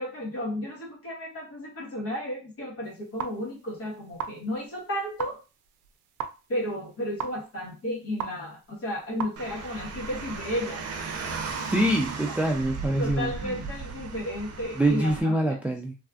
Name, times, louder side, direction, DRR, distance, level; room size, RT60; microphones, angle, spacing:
voice 1, 0.0-5.4 6.5-10.9 13.0-15.4, left 1 dB, 50° left, -1 dB, 1.4 m, -33 dB
sound 1, 2.8-10.3, right 8 dB, 90° right, 0.5 m, -41 dB
Car, 9.4-15.2, right 4 dB, 55° right, 0.7 m, -36 dB
voice 2, 11.7-13.6 14.1-14.2 14.8-15.9, right 1 dB, 5° right, 2 dB, 0.4 m, -25 dB
3.3 x 2.4 x 2.4 m, 0.31 s
cardioid pair, 90°, 30 cm